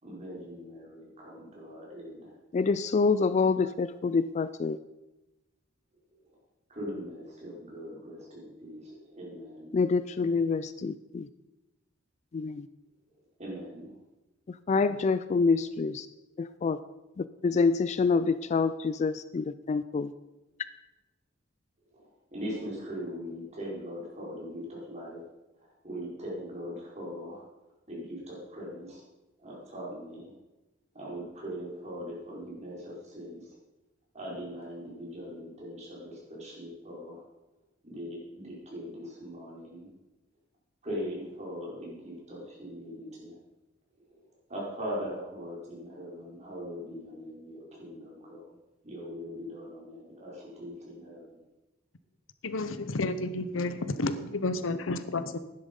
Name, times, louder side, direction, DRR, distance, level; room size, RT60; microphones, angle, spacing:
voice 1, 0.0-2.4 6.1-6.4 6.7-9.8 13.4-13.9 21.9-27.5 27.9-29.0 29.4-30.3 30.9-33.6 34.1-37.2 37.8-39.9 40.8-43.4 44.1-48.4 48.8-51.4, equal, 35° right, -4 dB, 4.6 m, -41 dB
voice 2, 2.5-4.8 9.7-11.3 12.3-12.7 14.7-16.1 16.4-16.8 17.2-20.1, left 4 dB, 35° left, 14 dB, 0.3 m, -26 dB
voice 3, 52.4-55.4, left 2 dB, 80° left, 12 dB, 0.8 m, -31 dB
11.5 x 10.0 x 5.3 m, 1.0 s
head